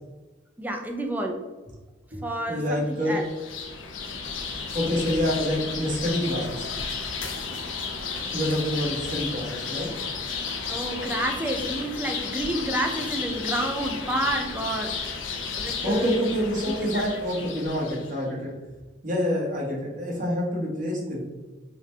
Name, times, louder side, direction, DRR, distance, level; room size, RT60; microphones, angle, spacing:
voice 1, 0.6-1.4 2.2-3.3 10.6-15.1 15.5-16.1 16.7-17.0, right 1 dB, 10° right, 3 dB, 0.4 m, -29 dB
voice 2, 2.1-3.2 4.7-6.7 8.3-9.9 15.8-18.5 19.0-21.2, equal, 45° right, -4 dB, 1.3 m, -27 dB
sound 1, 3.0-18.1, left 5 dB, 90° left, 0.6 m, -33 dB
3.8 x 2.3 x 4.5 m, 1.2 s
head